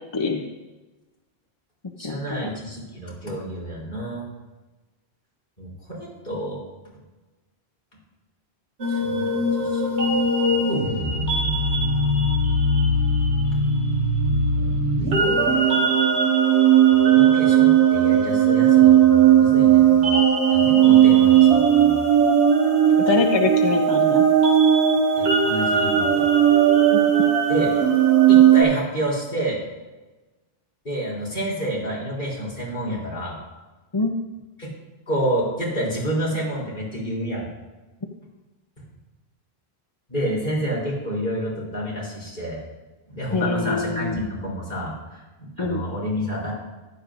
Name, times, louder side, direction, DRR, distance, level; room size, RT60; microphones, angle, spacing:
voice 1, 0.1-0.4 2.0-2.5 23.1-24.2 26.9-27.0 33.9-34.2 43.3-44.2 45.6-45.8, left 4 dB, 30° left, 3 dB, 0.6 m, -24 dB
voice 2, 2.0-4.3 5.6-6.6 8.9-10.2 10.5-10.9 14.6-14.8 17.0-20.1 20.5-22.0 25.2-26.2 27.5-27.7 28.3-29.6 30.8-33.4 34.6-34.7 35.1-37.5 40.1-42.6 43.1-46.5, equal, 50° left, -5 dB, 3.8 m, -29 dB
sound 1, 8.8-28.6, right 7 dB, 80° right, 1.8 m, -17 dB
14.5 x 11.0 x 2.6 m, 1.2 s
omnidirectional pair, 1.1 m